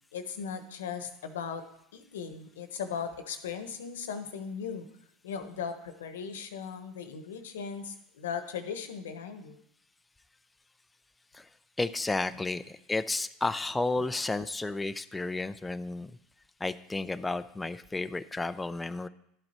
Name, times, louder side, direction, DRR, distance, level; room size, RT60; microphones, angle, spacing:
voice 1, 0.1-1.6 1.9-4.9 5.2-9.6, left 6 dB, 85° left, 9 dB, 1.1 m, -38 dB
voice 2, 11.8-16.1 16.6-19.1, left 2 dB, 10° left, 10 dB, 0.5 m, -32 dB
11.5 x 7.8 x 4.3 m, 0.76 s
hypercardioid pair, 95°, 0 cm